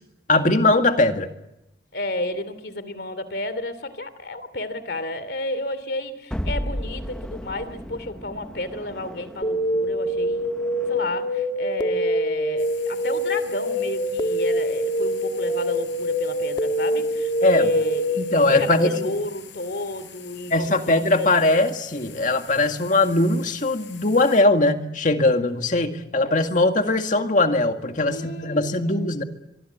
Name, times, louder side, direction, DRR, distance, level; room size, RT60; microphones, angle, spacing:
voice 1, 0.3-1.3 17.4-17.7 18.2-19.1 20.5-29.2, left 2 dB, 45° left, 6 dB, 2.0 m, -20 dB
voice 2, 1.9-10.5 10.9-21.6 28.0-29.2, left 1 dB, 60° left, 14 dB, 2.8 m, -31 dB
Hard Stomp Sound, 6.3-11.4, equal, 5° left, 1.0 m, -34 dB
sound 1, 9.4-19.0, equal, 30° left, 1.6 m, -25 dB
sound 2, 12.6-24.4, left 9 dB, 85° left, 6.2 m, -46 dB
24.5 x 24.0 x 8.3 m, 0.89 s
head